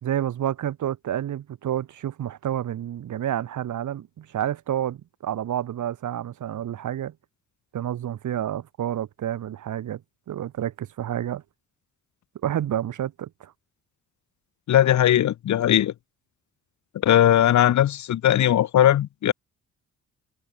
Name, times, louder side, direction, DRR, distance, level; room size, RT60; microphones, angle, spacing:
voice 1, 0.0-7.1 7.7-10.0 10.3-11.4 12.4-13.5, right 11 dB, 60° right, 0.9 m, -29 dB
voice 2, 14.7-15.9 17.0-19.3, left 11 dB, 60° left, 0.7 m, -19 dB
cardioid pair, 65°, 34 cm